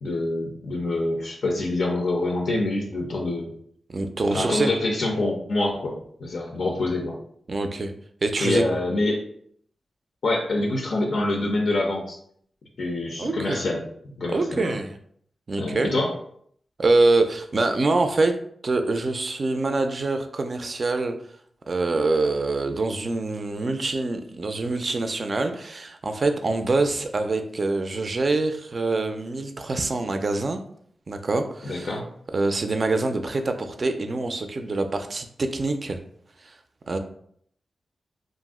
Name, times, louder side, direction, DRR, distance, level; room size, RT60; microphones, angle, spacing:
voice 1, 0.0-3.5 4.3-7.2 8.4-9.2 10.2-12.2 12.8-13.8 14.2-14.8 15.6-16.1 31.6-32.1, left 2 dB, 75° left, 0 dB, 0.5 m, -26 dB
voice 2, 3.9-4.7 7.5-7.9 8.2-8.6 13.2-13.6 14.3-15.0 15.5-15.9 16.8-18.3 18.6-21.1 21.7-30.6 31.1-31.9 32.3-36.0 36.9-37.0, right 3 dB, 50° right, 6 dB, 0.4 m, -25 dB
2.5 x 2.0 x 3.5 m, 0.65 s
cardioid pair, 55°, 0 cm